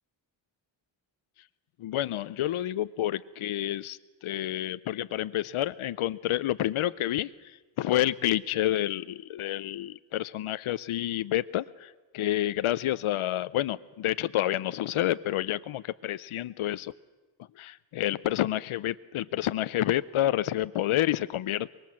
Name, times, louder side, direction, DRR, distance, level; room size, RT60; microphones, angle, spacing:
voice 1, 1.8-7.3 7.8-16.9 17.6-21.7, left 13 dB, 85° left, 0.7 m, -29 dB
24.0 x 21.5 x 7.5 m
wide cardioid pair, 145°, 48 cm